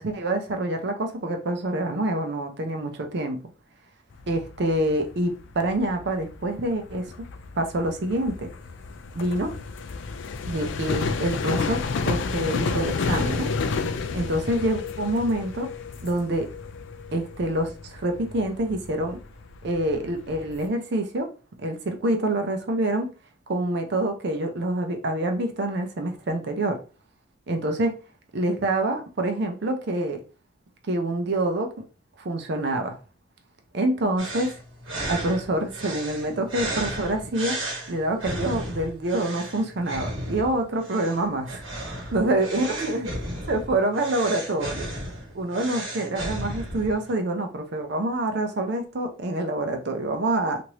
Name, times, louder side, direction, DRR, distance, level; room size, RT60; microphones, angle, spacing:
voice 1, 0.0-3.4 4.3-7.0 7.6-8.5 9.2-9.5 10.4-13.5 14.1-15.7 16.0-16.5 17.1-19.2 19.6-21.3 21.6-23.1 23.5-26.8 27.5-27.9 28.3-30.2 30.9-31.7 32.2-33.0 33.7-34.5 35.1-37.6 37.9-41.7 42.1-43.1 43.5-44.9 45.3-50.6, right 1 dB, 60° right, 0.5 m, -26 dB
sound 1, 4.1-20.7, left 4 dB, 70° left, 0.4 m, -31 dB
sound 2, 34.2-47.1, right 1 dB, 85° right, 1.1 m, -34 dB
3.0 x 2.5 x 2.9 m
head